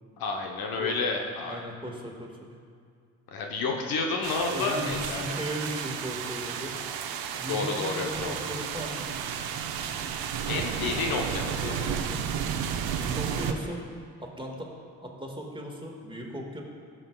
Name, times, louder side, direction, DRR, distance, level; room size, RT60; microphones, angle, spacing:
voice 1, 0.2-1.6 3.3-5.2 7.5-8.4 10.5-11.7 13.2-13.4, left 4 dB, 60° left, 2 dB, 1.1 m, -30 dB
voice 2, 1.4-2.3 4.5-6.7 7.4-9.3 10.7-11.0 11.6-12.4 12.9-13.8 14.2-14.7 15.0-16.6, equal, 15° right, -1 dB, 1.8 m, -37 dB
sound 1, 4.2-13.5, right 8 dB, 65° right, 0.7 m, -32 dB
15.5 x 6.2 x 2.4 m, 2.2 s
hypercardioid pair, 45°, 39 cm